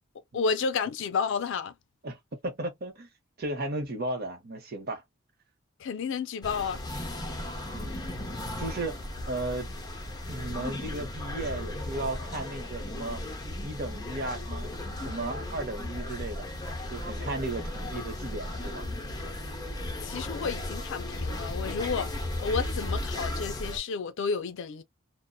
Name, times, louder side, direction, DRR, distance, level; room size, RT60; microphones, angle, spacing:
voice 1, 0.3-1.7 5.8-6.8 20.0-22.1 22.4-24.8, left 5 dB, 65° left, 0.4 m, -31 dB
voice 2, 2.4-3.1 3.4-5.0 7.7-8.0 8.6-9.0 9.3-9.7 10.3-13.2 13.6-14.7 15.0-16.5 16.9-18.9, right 2 dB, 50° right, 0.8 m, -35 dB
sound 1, 6.4-23.8, left 1 dB, 20° left, 0.6 m, -35 dB
2.6 x 2.1 x 2.3 m
head